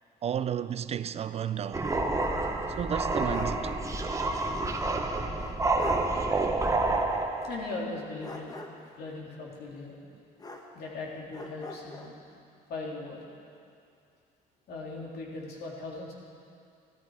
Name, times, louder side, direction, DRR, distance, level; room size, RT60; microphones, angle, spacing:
voice 1, 0.2-1.9 2.8-3.7, right 9 dB, 40° right, 0.4 m, -32 dB
sound 1, 1.7-7.7, right 2 dB, 20° right, 1.0 m, -29 dB
sound 2, 2.7-3.7 4.0-4.1 5.4-5.5 5.8-6.1 8.2-8.9 10.4-11.0 11.3-12.1, left 2 dB, 20° left, 1.3 m, -42 dB
voice 2, 7.4-8.6 8.9-9.9 10.7-12.2 12.7-13.3 14.7-16.1, left 3 dB, 65° left, 3.1 m, -39 dB
14.0 x 13.0 x 4.9 m
cardioid pair, 110°, 17 cm